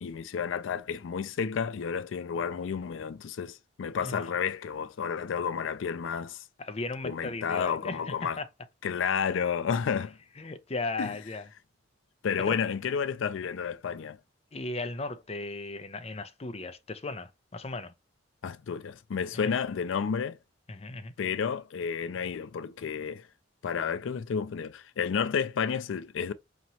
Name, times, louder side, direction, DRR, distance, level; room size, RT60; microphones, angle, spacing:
voice 1, 0.0-6.4 7.0-8.4 8.8-10.2 11.0-11.2 12.2-14.2 18.4-20.4 21.2-23.3 23.6-26.3, left 6 dB, 90° left, 0.4 m, -31 dB
voice 2, 6.6-8.5 10.4-11.5 12.5-12.6 14.5-17.9 19.4-19.5 20.7-21.1, left 2 dB, 35° left, 0.5 m, -36 dB
5.1 x 2.9 x 2.8 m
head